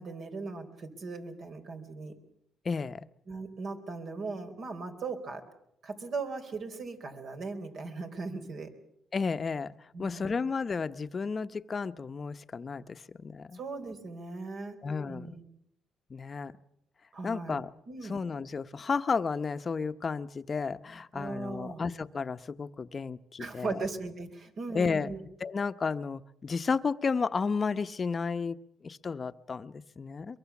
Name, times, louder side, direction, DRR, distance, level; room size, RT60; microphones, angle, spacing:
voice 1, 0.0-2.1 3.3-5.4 5.8-8.7 9.9-10.4 13.5-14.8 15.1-15.4 17.1-17.6 17.9-18.2 21.1-21.8 23.4-25.2, right 3 dB, 60° right, 5 dB, 4.1 m, -38 dB
voice 2, 2.6-3.0 9.1-13.6 14.8-15.3 16.1-16.5 17.2-17.7 18.0-23.8 24.7-25.1 25.4-28.6 28.8-30.4, left 5 dB, 40° left, 12 dB, 0.9 m, -32 dB
23.0 x 23.0 x 7.2 m, 0.76 s
cardioid pair, 90°, 0 cm